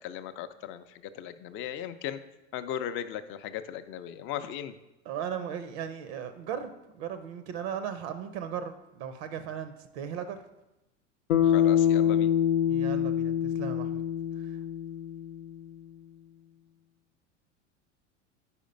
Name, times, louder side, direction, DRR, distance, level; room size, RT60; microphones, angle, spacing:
voice 1, 0.0-2.2 2.5-4.7 11.4-12.3, left 10 dB, 35° left, 10 dB, 0.4 m, -37 dB
voice 2, 5.1-10.4 12.7-14.0 14.4-14.6, right 8 dB, 60° right, 10 dB, 0.6 m, -37 dB
Bass guitar, 11.3-15.7, left 10 dB, 85° left, 0.6 m, -26 dB
4.9 x 4.3 x 5.2 m, 0.93 s
hypercardioid pair, 85°, 37 cm